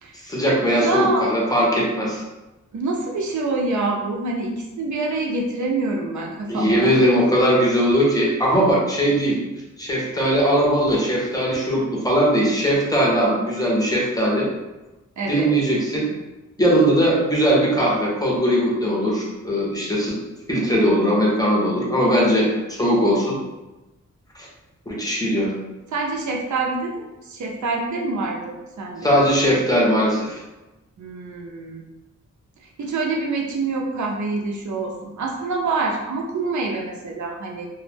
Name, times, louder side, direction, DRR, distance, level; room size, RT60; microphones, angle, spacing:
voice 1, 0.2-2.2 6.5-9.4 9.8-14.5 15.3-16.1 16.6-20.1 20.5-23.4 24.3-24.5 24.9-25.5 29.0-30.4, equal, 10° left, -4 dB, 0.6 m, -19 dB
voice 2, 0.8-1.3 2.7-7.2 15.2-15.5 25.9-29.1 31.0-31.8 32.6-37.7, right 3 dB, 70° right, -1 dB, 0.5 m, -26 dB
2.1 x 2.1 x 3.2 m, 1.1 s
wide cardioid pair, 110°, 31 cm